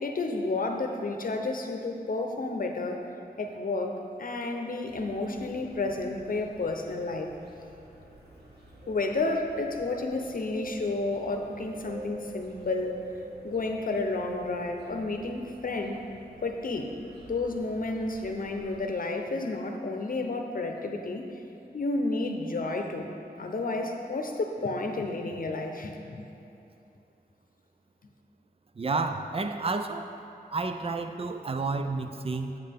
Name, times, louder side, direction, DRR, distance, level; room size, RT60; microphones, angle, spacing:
voice 1, 0.0-3.0 3.4-7.3 8.9-13.0 13.4-16.0 16.4-16.9 17.3-21.3 21.7-23.1 23.4-26.2, left 2 dB, 55° left, 4 dB, 0.8 m, -31 dB
sound 1, 4.9-18.8, right 2 dB, 80° right, 1.6 m, -47 dB
voice 2, 28.8-30.1 30.5-32.6, right 3 dB, 35° right, 7 dB, 0.5 m, -30 dB
8.7 x 7.9 x 3.6 m, 2.7 s
wide cardioid pair, 110°, 17 cm